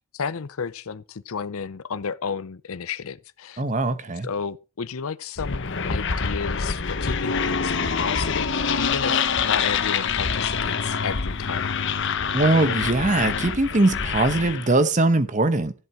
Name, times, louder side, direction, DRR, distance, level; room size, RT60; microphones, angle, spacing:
voice 1, 0.1-3.6 4.2-11.7, left 6 dB, 70° left, 0.6 m, -32 dB
voice 2, 3.6-4.3 12.3-15.7, right 2 dB, 35° right, 0.9 m, -21 dB
sound 1, 5.4-14.8, left 6 dB, 55° left, 1.0 m, -26 dB
13.0 x 8.0 x 4.7 m
head